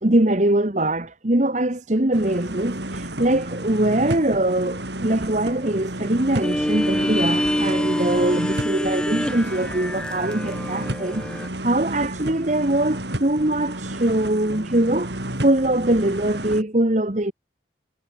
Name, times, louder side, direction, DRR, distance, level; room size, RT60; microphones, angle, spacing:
voice 1, 0.0-17.3, right 1 dB, 40° right, 1.6 m, -22 dB
sound 1, 2.1-16.6, right 1 dB, 70° right, 5.5 m, -32 dB
sound 2, 6.4-11.5, equal, 5° left, 1.3 m, -25 dB
head